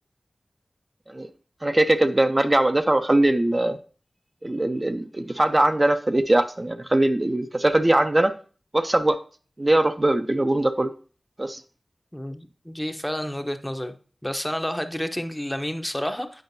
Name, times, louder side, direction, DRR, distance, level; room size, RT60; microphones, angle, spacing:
voice 1, 1.6-3.8 4.4-8.3 8.7-9.2 9.6-10.9 11.4-11.6, right 1 dB, 35° right, 7 dB, 0.4 m, -21 dB
voice 2, 12.1-13.9 14.2-16.4, equal, 10° left, 7 dB, 0.7 m, -30 dB
8.6 x 5.0 x 2.6 m, 0.39 s
wide cardioid pair, 55°, 0 cm